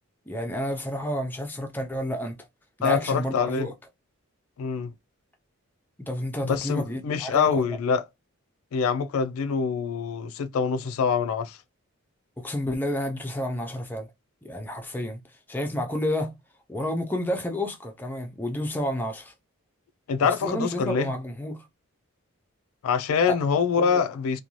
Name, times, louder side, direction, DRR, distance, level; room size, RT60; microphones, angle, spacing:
voice 1, 0.3-2.4 2.8-3.7 6.0-7.8 12.4-14.1 14.4-15.2 15.5-16.3 16.7-19.3 20.2-21.6 23.3-23.4 23.8-24.0, left 1 dB, 10° left, 0.4 m, -30 dB
voice 2, 2.8-3.7 4.6-4.9 6.4-8.0 8.7-11.6 20.1-21.1 22.8-24.4, left 6 dB, 75° left, 0.3 m, -25 dB
2.5 x 2.3 x 2.9 m
head